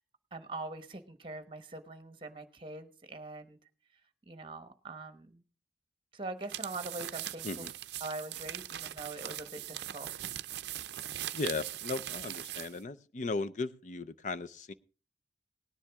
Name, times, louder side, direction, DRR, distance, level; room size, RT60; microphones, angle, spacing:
voice 1, 0.3-3.6 4.3-5.4 6.1-7.6 8.0-10.3, right 2 dB, 30° right, 9 dB, 1.0 m, -43 dB
sound 1, 6.4-12.8, right 12 dB, 75° right, 0.5 m, -40 dB
voice 2, 11.3-14.7, left 3 dB, 45° left, 13 dB, 0.5 m, -36 dB
18.5 x 10.0 x 3.5 m, 0.35 s
head